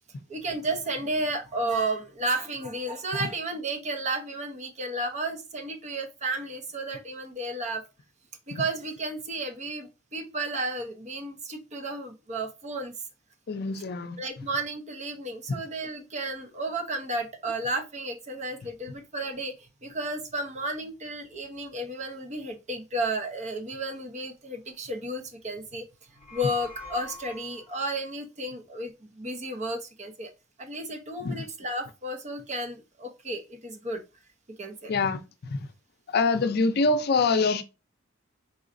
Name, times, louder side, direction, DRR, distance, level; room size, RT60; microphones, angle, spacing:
voice 1, 0.3-7.8 8.5-12.9 14.2-25.9 26.3-30.3 30.6-34.0 34.6-34.9, right 2 dB, 35° right, 0.7 m, -33 dB
voice 2, 13.5-14.2 15.5-15.6 31.2-31.4 34.9-35.6 36.1-37.6, left 3 dB, 50° left, 0.5 m, -25 dB
sound 1, 26.0-27.9, left 3 dB, 10° right, 1.9 m, -45 dB
4.2 x 3.9 x 2.5 m
head